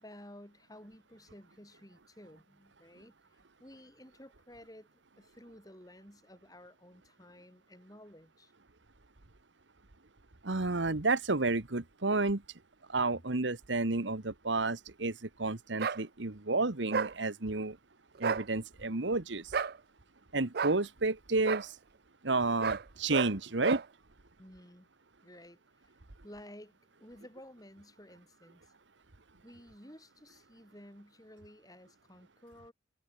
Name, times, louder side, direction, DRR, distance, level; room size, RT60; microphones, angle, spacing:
voice 1, 0.0-8.5 24.4-24.9 25.2-26.0 26.2-28.7 29.4-32.7, left 1 dB, 20° left, 6.2 m, -54 dB
voice 2, 10.4-12.4 12.9-17.8 18.2-19.5 20.3-21.7 22.2-23.8, right 3 dB, 75° right, 1.5 m, -31 dB
sound 1, 15.8-16.0 16.9-17.1 18.1-18.4 19.5-19.8 20.5-20.8 21.4-21.6 22.6-22.8 23.1-23.3 23.6-23.8, right 6 dB, 55° right, 0.5 m, -32 dB
head